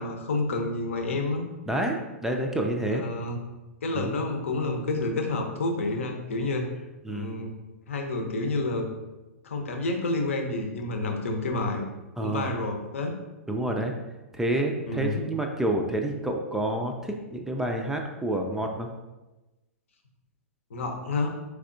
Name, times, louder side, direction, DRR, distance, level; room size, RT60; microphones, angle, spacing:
voice 1, 0.0-1.4 2.8-3.4 3.8-6.7 7.1-7.5 7.9-8.9 9.4-11.8 12.2-13.2 14.9-15.2 20.7-21.3, left 2 dB, 65° left, 3 dB, 0.7 m, -29 dB
voice 2, 1.7-3.0 3.9-4.2 7.0-7.4 12.2-12.5 13.5-13.9 14.3-18.9, right 1 dB, 5° right, 2 dB, 0.3 m, -28 dB
4.7 x 3.3 x 2.6 m, 1.1 s
figure-of-eight pair, 105°, 7 cm